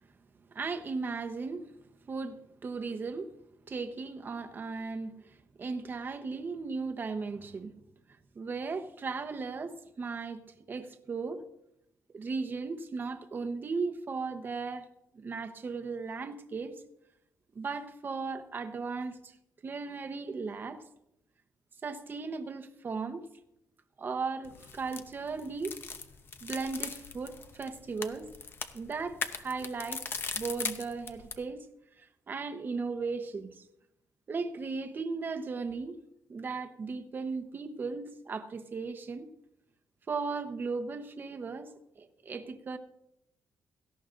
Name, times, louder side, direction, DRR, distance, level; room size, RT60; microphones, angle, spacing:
voice 1, 0.5-1.7 2.1-3.3 3.7-7.7 8.3-11.4 12.1-14.9 15.1-16.7 17.5-19.3 19.6-20.8 21.8-23.3 24.0-25.8 26.4-28.3 28.7-30.0 30.3-31.7 32.0-33.6 34.3-36.0 36.3-39.3 40.1-41.7 42.0-42.8, right 4 dB, 30° right, 1.0 m, -36 dB
sound 1, 24.4-31.4, left 5 dB, 35° left, 0.8 m, -40 dB
17.5 x 14.0 x 2.6 m
cardioid pair, 140°, 6 cm